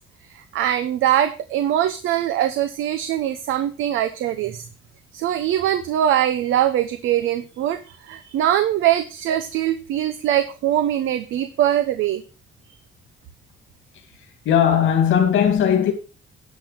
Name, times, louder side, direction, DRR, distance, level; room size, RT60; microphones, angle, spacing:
voice 1, 0.3-4.6 5.1-12.2, right 11 dB, 85° right, 0.8 m, -22 dB
voice 2, 14.4-15.9, left 8 dB, 80° left, 2.5 m, -17 dB
10.5 x 5.9 x 5.9 m
cardioid pair, 90°, 20 cm